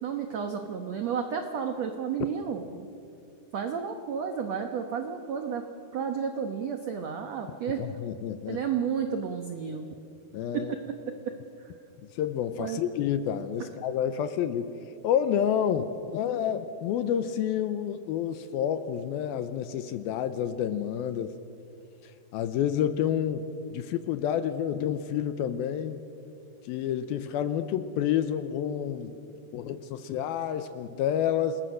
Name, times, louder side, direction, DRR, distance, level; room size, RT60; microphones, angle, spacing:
voice 1, 0.0-2.9 3.5-5.6 5.9-7.8 8.5-9.9 10.5-10.6 11.0-11.1 11.6-11.7 12.6-12.8, right 7 dB, 90° right, 5 dB, 1.4 m, -32 dB
voice 2, 7.8-8.6 10.3-10.7 12.1-14.7 15.0-21.4 22.0-26.0 26.7-29.2 29.5-31.6, left 9 dB, 80° left, 11 dB, 2.4 m, -29 dB
28.5 x 20.0 x 6.4 m, 2.6 s
omnidirectional pair, 4.8 m